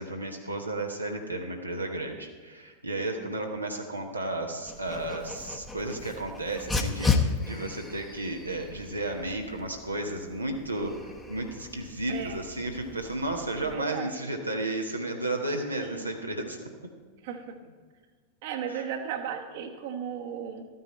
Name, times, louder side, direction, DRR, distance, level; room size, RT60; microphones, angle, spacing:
voice 1, 0.0-16.6 18.7-18.8, right 1 dB, 85° right, 1 dB, 1.0 m, -33 dB
Dog, 4.7-13.7, left 4 dB, 10° left, 1.1 m, -34 dB
voice 2, 12.1-12.4 13.6-14.2 15.8-16.1 17.2-17.6 18.4-20.7, right 8 dB, 50° right, 4 dB, 1.2 m, -35 dB
13.5 x 9.3 x 4.3 m, 1.6 s
figure-of-eight pair, 90°, 0 cm